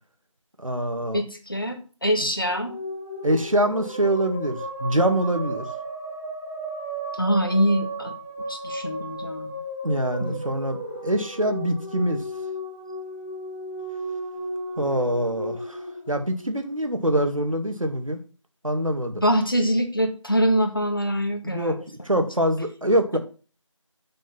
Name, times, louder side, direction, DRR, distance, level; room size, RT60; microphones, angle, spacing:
voice 1, 0.6-1.2 3.2-5.7 9.8-12.2 14.8-15.8 16.1-18.2 18.6-19.2 21.4-21.8 22.0-23.2, right 1 dB, 85° right, 6 dB, 1.9 m, -24 dB
voice 2, 1.1-2.7 7.1-8.1 8.5-9.5 10.2-10.4 19.2-21.8 22.2-22.3, equal, 45° left, 5 dB, 1.3 m, -24 dB
sound 1, 2.3-16.8, right 1 dB, 20° left, 1.6 m, -34 dB
6.5 x 6.3 x 5.7 m, 0.37 s
figure-of-eight pair, 180°, 17 cm